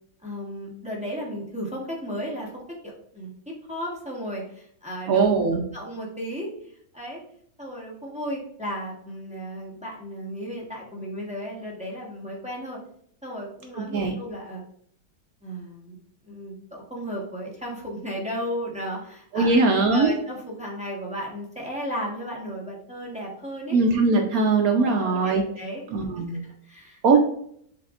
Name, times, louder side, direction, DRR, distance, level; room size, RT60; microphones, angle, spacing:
voice 1, 0.2-5.3 5.7-6.5 6.9-7.2 7.6-12.8 13.2-14.6 15.4-16.0 16.2-19.6 19.9-23.8 24.8-25.8 26.2-27.2, equal, 5° right, -4 dB, 0.7 m, -34 dB
voice 2, 5.1-5.6 13.8-14.2 19.3-20.1 23.7-25.4 25.9-26.4 27.0-27.2, right 3 dB, 70° right, 3 dB, 0.9 m, -20 dB
6.9 x 2.8 x 2.4 m, 0.65 s
omnidirectional pair, 1.9 m